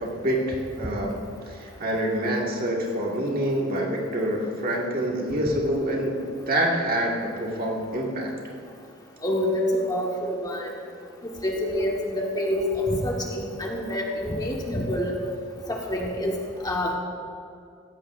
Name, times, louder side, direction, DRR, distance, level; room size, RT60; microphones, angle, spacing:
voice 1, 0.0-6.2 6.5-8.3, right 1 dB, 50° right, -1 dB, 1.8 m, -26 dB
voice 2, 9.2-10.7 11.4-15.1 15.7-16.3 16.6-16.9, left 1 dB, 20° left, -1 dB, 1.3 m, -27 dB
15.5 x 15.5 x 2.5 m, 2.3 s
head